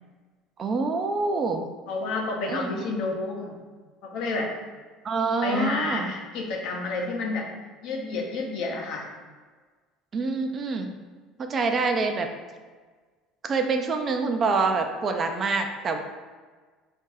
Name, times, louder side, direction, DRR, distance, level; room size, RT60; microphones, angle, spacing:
voice 1, 0.6-1.7 2.5-2.7 5.0-6.1 10.1-10.9 11.4-12.3 13.4-16.0, right 4 dB, 35° right, 5 dB, 0.4 m, -26 dB
voice 2, 1.9-3.6 4.0-4.5 5.4-7.5 7.8-9.1, left 3 dB, 65° left, 0 dB, 0.7 m, -29 dB
3.5 x 2.6 x 3.9 m, 1.4 s
cardioid pair, 120°, 0 cm